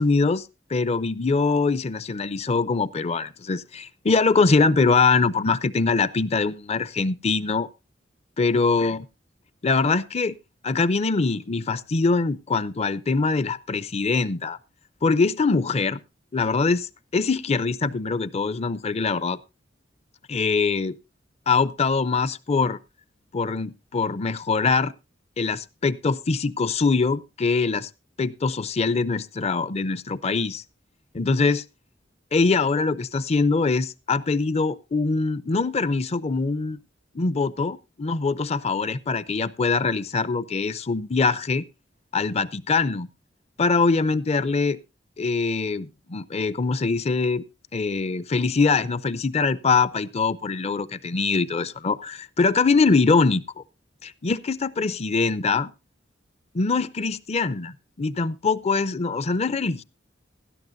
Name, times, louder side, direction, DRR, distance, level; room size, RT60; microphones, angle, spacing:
voice 1, 0.0-7.7 8.4-9.0 9.6-10.4 10.6-14.6 15.0-16.0 16.3-19.4 20.3-21.0 21.5-22.8 23.3-24.9 25.4-27.9 28.2-30.6 31.1-31.6 32.3-36.8 37.1-41.6 42.1-43.1 43.6-44.8 45.2-47.4 47.7-53.6 54.0-55.7 56.5-59.8, left 4 dB, 35° left, 0.5 m, -23 dB
17.0 x 12.5 x 2.6 m
head